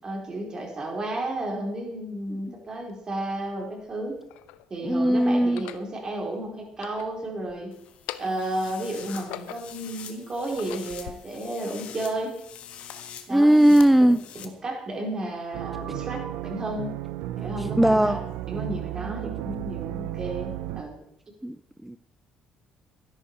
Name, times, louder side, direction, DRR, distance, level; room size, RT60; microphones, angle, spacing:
voice 1, 0.0-4.2 4.7-7.7 8.2-12.4 13.3-13.7 14.4-16.9 17.4-18.2 18.5-21.0, right 1 dB, 35° right, 0 dB, 4.7 m, -32 dB
sound 1, 2.9-3.0 3.8-4.7 5.4-5.9 6.6-7.6 7.9-8.5 9.0-9.9 10.4-11.1, left 14 dB, 90° left, 0.6 m, -41 dB
voice 2, 4.8-5.7 13.3-14.2 17.6-18.2 21.4-21.6 21.8-22.0, right 1 dB, 5° right, 13 dB, 0.4 m, -18 dB
sound 2, 7.7-14.5, left 9 dB, 70° left, 1.5 m, -44 dB
sound 3, 15.5-20.8, right 14 dB, 90° right, 0.6 m, -33 dB
13.0 x 11.0 x 4.9 m, 0.77 s
cardioid pair, 85°, 2 cm